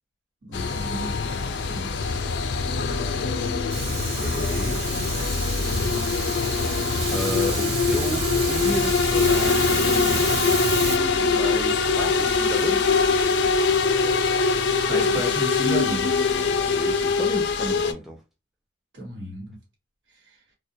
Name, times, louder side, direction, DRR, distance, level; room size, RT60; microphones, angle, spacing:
voice 1, 0.4-2.2 14.9-16.3 18.9-19.5, right 1 dB, 80° right, 1.2 m, -33 dB
sound 1, 0.5-17.9, left 4 dB, 75° left, 0.4 m, -23 dB
Fire, 3.7-11.0, right 5 dB, 55° right, 0.5 m, -30 dB
voice 2, 3.9-4.8 7.1-10.2 11.4-13.0 16.4-18.2, right 1 dB, ahead, 0.4 m, -33 dB
2.2 x 2.1 x 2.6 m
head